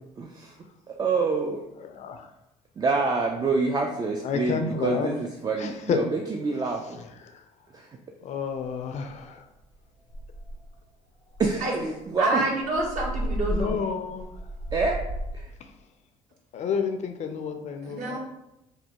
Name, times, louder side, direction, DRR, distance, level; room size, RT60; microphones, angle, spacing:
voice 1, 0.2-0.5 0.9-1.6 2.8-6.8 7.7-7.9 11.4-12.5 14.7-15.0 15.3-15.5, right 4 dB, 25° right, 1 dB, 0.4 m, -27 dB
voice 2, 1.8-2.3 4.2-5.1 5.6-6.0 6.8-7.4 8.2-9.4 13.5-14.3 15.6-15.7 16.5-18.2, left 6 dB, 50° left, 6 dB, 0.4 m, -30 dB
sound 1, 9.1-9.4 9.7-9.8 10.1-10.8 11.3-15.5, right 1 dB, 80° right, 1.4 m, -33 dB
voice 3, 12.2-13.8 17.8-18.2, right 2 dB, 55° right, -3 dB, 1.0 m, -27 dB
3.1 x 2.2 x 2.9 m, 0.88 s
supercardioid pair, 65°, 15 cm